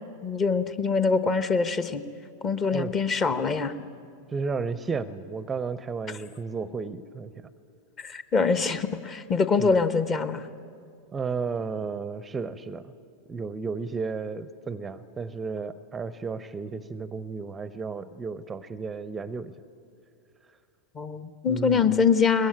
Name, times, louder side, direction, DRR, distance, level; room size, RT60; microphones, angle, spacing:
voice 1, 0.2-2.0 2.4-3.7 8.0-10.5 20.9-22.5, left 5 dB, 25° left, 12 dB, 1.0 m, -24 dB
voice 2, 4.3-7.5 9.6-9.8 11.1-12.9 13.3-19.6 20.5-20.6 21.5-22.0, right 4 dB, 15° right, 16 dB, 0.7 m, -33 dB
22.0 x 20.5 x 8.6 m, 2.4 s
figure-of-eight pair, 90°, 0 cm